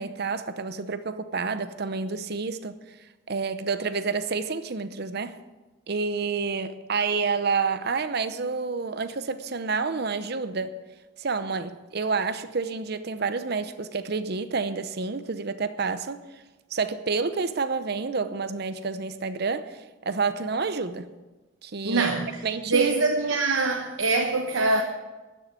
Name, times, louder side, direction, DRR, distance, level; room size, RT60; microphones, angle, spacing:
voice 1, 0.0-2.8 3.3-5.4 5.9-10.8 11.2-16.2 16.7-21.1 21.6-22.1 22.4-22.9, right 4 dB, 55° right, 0.7 m, -29 dB
voice 2, 21.8-22.3 22.7-24.8, right 3 dB, 80° right, 1.1 m, -23 dB
13.0 x 7.2 x 9.4 m
head